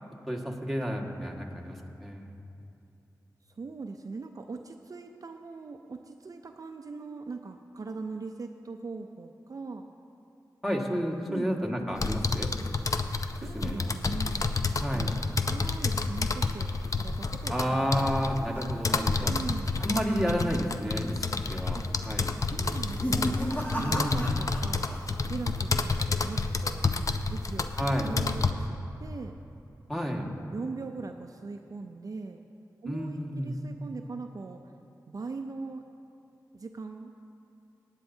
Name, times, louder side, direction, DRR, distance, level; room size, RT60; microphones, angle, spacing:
voice 1, 0.3-2.3 10.6-12.5 13.5-13.9 14.8-15.1 17.5-19.3 19.8-22.3 23.8-24.3 27.8-28.1 29.9-30.3 32.8-33.6, equal, ahead, -1 dB, 1.6 m, -31 dB
voice 2, 3.5-9.9 11.3-11.5 13.3-14.6 14.9-18.3 19.3-19.8 21.7-21.9 22.4-23.4 23.7-25.0 25.3-26.9 27.3-27.7 28.0-29.4 29.9-30.0 30.5-32.4 32.8-34.6 35.1-35.8 36.5-37.1, right 4 dB, 55° right, 5 dB, 0.5 m, -40 dB
sound 1, 12.0-28.5, left 3 dB, 50° left, 0.6 m, -30 dB
sound 2, 17.0-19.5 19.8-20.1 20.5-20.6 21.3-21.7 22.6-25.0 25.3-25.9, equal, 25° left, 1.7 m, -36 dB
18.0 x 9.0 x 2.7 m, 2.7 s
cardioid pair, 45°, 7 cm